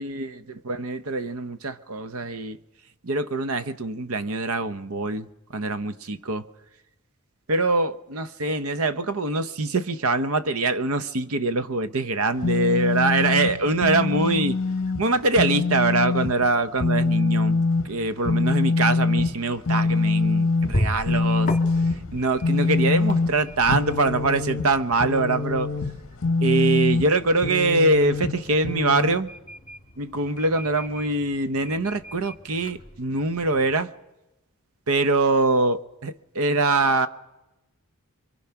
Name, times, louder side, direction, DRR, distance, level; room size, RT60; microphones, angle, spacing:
voice 1, 0.0-2.6 3.0-5.3 5.5-6.4 7.5-14.6 15.0-21.5 22.1-25.7 26.4-29.3 30.0-33.9 34.9-37.1, right 3 dB, 85° right, 0.9 m, -24 dB
sound 1, 12.4-29.1, left 3 dB, 65° left, 0.8 m, -24 dB
sound 2, 19.4-33.8, left 1 dB, 35° left, 1.8 m, -37 dB
25.0 x 23.5 x 5.9 m
head